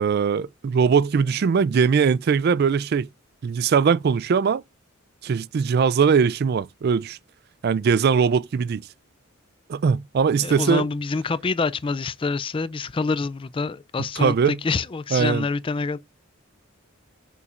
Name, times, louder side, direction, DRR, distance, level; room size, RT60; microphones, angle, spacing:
voice 1, 0.0-3.1 3.4-4.6 5.2-7.2 7.6-8.9 9.7-10.9 14.2-14.6 15.1-15.5, right 6 dB, 50° right, 0.3 m, -20 dB
voice 2, 10.4-16.0, left 4 dB, 25° left, 0.3 m, -26 dB
8.4 x 7.0 x 2.5 m
head